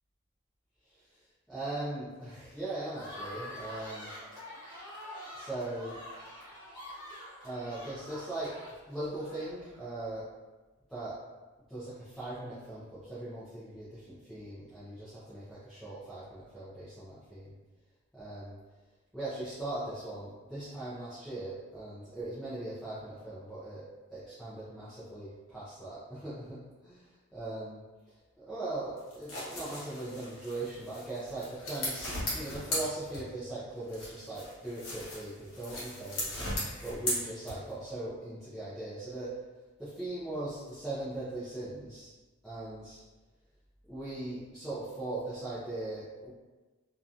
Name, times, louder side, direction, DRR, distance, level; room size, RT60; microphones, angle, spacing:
voice 1, 1.5-4.1 5.3-6.0 7.4-8.5 8.9-10.2 10.9-11.2 11.7-17.5 18.1-18.5 19.1-23.8 24.1-27.0 27.3-27.8 28.4-36.3 36.8-39.3 39.8-42.1 42.4-43.0 43.9-46.3, right 2 dB, ahead, -13 dB, 0.5 m, -39 dB
sound 1, 2.9-9.9, left 1 dB, 20° left, 1.0 m, -46 dB
sound 2, 29.0-33.5 33.9-37.9, left 1 dB, 60° left, 1.0 m, -37 dB
2.8 x 2.4 x 2.4 m, 1.2 s
head